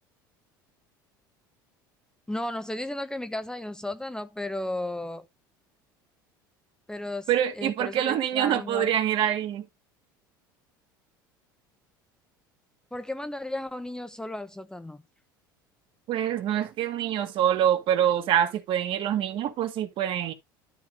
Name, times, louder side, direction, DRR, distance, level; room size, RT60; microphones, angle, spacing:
voice 1, 2.3-5.3 6.9-8.9 12.9-15.0, left 1 dB, 5° left, 1.0 m, -34 dB
voice 2, 7.3-9.6 16.1-20.3, right 10 dB, 50° right, 2.0 m, -25 dB
12.5 x 4.6 x 3.6 m
hypercardioid pair, 70°, 11 cm